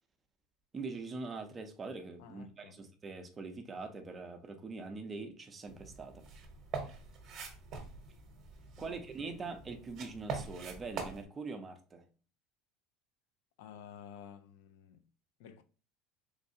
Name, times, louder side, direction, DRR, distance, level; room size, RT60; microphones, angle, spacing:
voice 1, 0.7-6.3 8.8-12.1, right 4 dB, 20° right, 0.5 m, -43 dB
voice 2, 2.2-2.8 8.7-9.4 13.6-15.0 15.4-15.6, left 8 dB, 80° left, 0.4 m, -52 dB
sound 1, 5.7-11.2, right 5 dB, 40° right, 0.9 m, -44 dB
3.5 x 3.2 x 2.7 m
cardioid pair, 150°, 0 cm